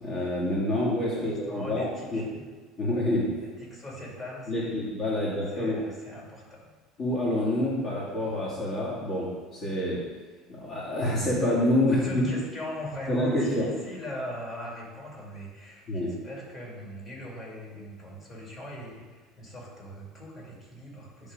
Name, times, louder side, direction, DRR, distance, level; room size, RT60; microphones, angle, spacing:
voice 1, 0.0-1.8 2.1-2.2 2.8-3.3 4.5-5.8 7.0-10.0 10.5-12.2 13.1-13.7 15.9-16.1, left 1 dB, 45° left, -6 dB, 1.9 m, -27 dB
voice 2, 1.1-2.5 3.4-5.2 5.5-6.7 11.9-21.3, equal, 30° left, -4 dB, 2.5 m, -40 dB
9.8 x 3.6 x 5.2 m, 1.4 s
cardioid pair, 140°, 0 cm